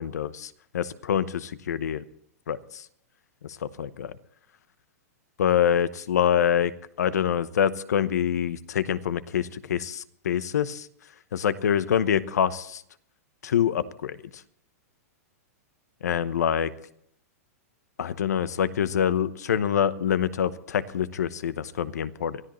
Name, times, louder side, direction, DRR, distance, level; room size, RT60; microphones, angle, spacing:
voice 1, 0.0-2.0 2.5-2.8 3.8-4.1 5.4-6.7 7.0-10.9 11.3-12.8 13.4-14.2 16.0-16.7 18.0-22.4, left 9 dB, 90° left, 15 dB, 0.9 m, -25 dB
24.0 x 13.5 x 3.1 m, 0.67 s
hypercardioid pair, 150°, 9 cm